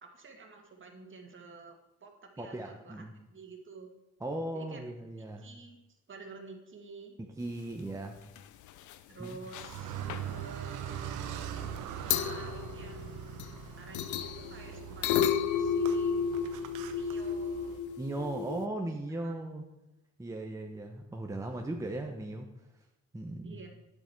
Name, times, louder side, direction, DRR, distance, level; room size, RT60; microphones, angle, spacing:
voice 1, 0.0-3.0 3.3-3.9 4.5-4.8 5.2-7.2 9.1-11.3 12.0-13.2 13.8-16.2 16.9-18.0 19.1-19.3 23.4-23.7, right 4 dB, 40° right, 3 dB, 1.9 m, -50 dB
voice 2, 2.4-3.1 4.2-5.4 7.2-8.2 9.2-9.4 18.0-19.6 20.2-22.5 23.1-23.6, right 1 dB, 10° right, 2 dB, 0.9 m, -37 dB
sound 1, 8.2-8.4 8.7-8.9 9.2-9.8 10.1-10.3 11.8-11.9 12.1-13.6 13.9-18.7, left 7 dB, 75° left, 0.6 m, -32 dB
Car, 9.5-17.8, right 9 dB, 85° right, 1.0 m, -41 dB
10.0 x 7.7 x 4.6 m, 0.96 s
cardioid pair, 90°, 30 cm